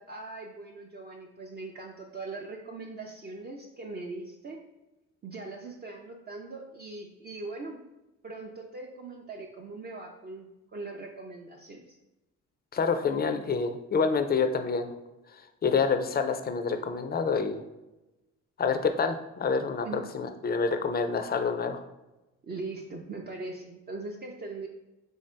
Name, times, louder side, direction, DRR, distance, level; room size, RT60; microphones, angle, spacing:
voice 1, 0.0-4.6 5.2-7.8 8.2-12.0 19.8-20.1 22.4-24.7, right 3 dB, 35° right, 1 dB, 0.5 m, -40 dB
voice 2, 12.7-14.9 15.3-17.6 18.6-21.8, left 5 dB, 30° left, 7 dB, 0.4 m, -27 dB
3.6 x 2.7 x 3.2 m, 1.0 s
cardioid pair, 90°, 30 cm